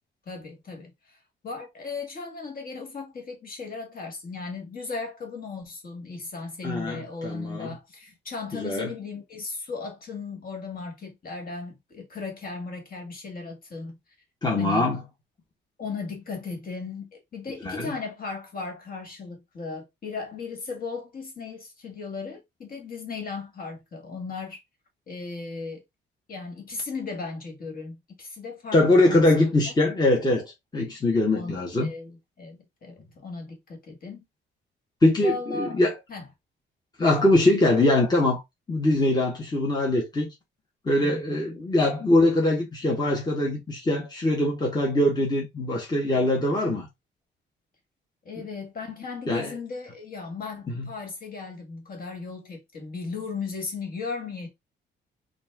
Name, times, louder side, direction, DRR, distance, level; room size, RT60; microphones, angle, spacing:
voice 1, 0.3-14.0 14.6-14.9 15.8-24.6 25.1-25.8 26.3-29.2 31.3-34.3 35.2-35.8 36.1-36.2 41.0-41.6 48.2-54.5, left 4 dB, 45° left, 2.1 m, -36 dB
voice 2, 6.6-7.7 8.5-8.9 14.4-15.0 17.6-17.9 28.7-31.9 35.0-35.9 37.0-38.4 38.7-40.3 40.8-46.9 49.3-49.5 50.8-50.9, left 1 dB, 20° left, 1.4 m, -22 dB
4.1 x 2.6 x 3.6 m
cardioid pair, 90°, 20 cm